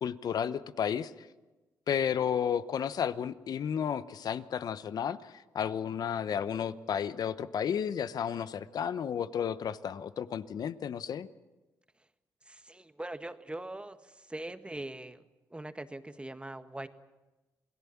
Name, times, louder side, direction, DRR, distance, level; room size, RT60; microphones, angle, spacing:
voice 1, 0.0-1.1 1.9-11.3, left 8 dB, 65° left, 14 dB, 1.0 m, -32 dB
voice 2, 12.4-15.2 15.5-16.9, right 1 dB, 15° right, 9 dB, 1.7 m, -42 dB
27.5 x 18.5 x 7.3 m, 1.1 s
supercardioid pair, 50°, 7 cm